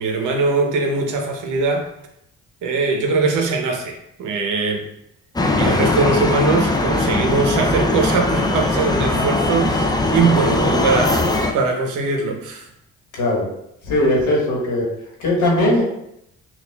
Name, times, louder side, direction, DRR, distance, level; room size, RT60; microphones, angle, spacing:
voice 1, 0.0-1.8 2.6-4.8 5.6-12.6, right 3 dB, 85° right, 3 dB, 0.8 m, -21 dB
sound 1, 5.4-11.5, left 2 dB, 15° left, 0.4 m, -20 dB
voice 2, 13.1-13.5 13.8-14.9 15.2-15.8, left 1 dB, 80° left, -3 dB, 1.3 m, -18 dB
5.8 x 2.4 x 2.2 m, 0.77 s
cardioid pair, 90°, 30 cm